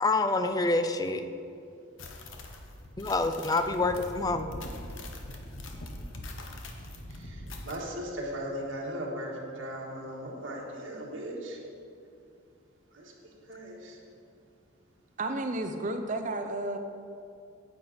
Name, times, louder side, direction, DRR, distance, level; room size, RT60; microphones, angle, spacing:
voice 1, 0.0-1.3 3.0-4.6, left 2 dB, 20° left, 8 dB, 0.4 m, -27 dB
sound 1, 2.0-7.8, left 1 dB, 75° left, 1.0 m, -42 dB
voice 2, 7.1-11.6 12.9-13.1 13.5-14.0, equal, 75° right, -3 dB, 1.9 m, -38 dB
voice 3, 15.2-16.8, right 2 dB, 40° right, 6 dB, 0.6 m, -32 dB
9.6 x 8.2 x 4.3 m, 2.5 s
head